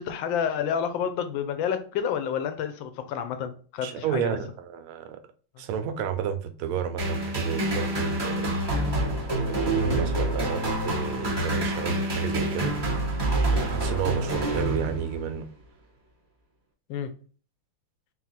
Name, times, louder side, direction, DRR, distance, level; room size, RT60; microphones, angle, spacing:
voice 1, 0.0-4.4 9.8-10.0 16.9-17.1, left 8 dB, 75° left, 1.2 m, -29 dB
voice 2, 3.8-5.2 5.6-8.6 9.5-13.2 13.5-15.5, right 8 dB, 85° right, 1.5 m, -32 dB
sound 1, 7.0-15.3, right 1 dB, 15° right, 0.9 m, -27 dB
4.2 x 2.2 x 4.0 m
omnidirectional pair, 2.3 m